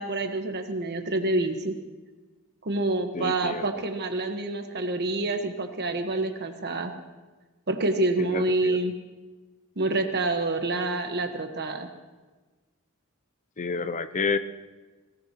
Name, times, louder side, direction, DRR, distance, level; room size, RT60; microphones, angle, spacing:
voice 1, 0.0-1.7 2.6-6.9 7.7-8.9 9.8-11.9, right 2 dB, 50° right, 6 dB, 1.4 m, -27 dB
voice 2, 3.1-3.6 8.2-8.8 13.6-14.4, left 4 dB, 35° left, 12 dB, 0.5 m, -29 dB
22.5 x 17.5 x 3.0 m, 1.3 s
head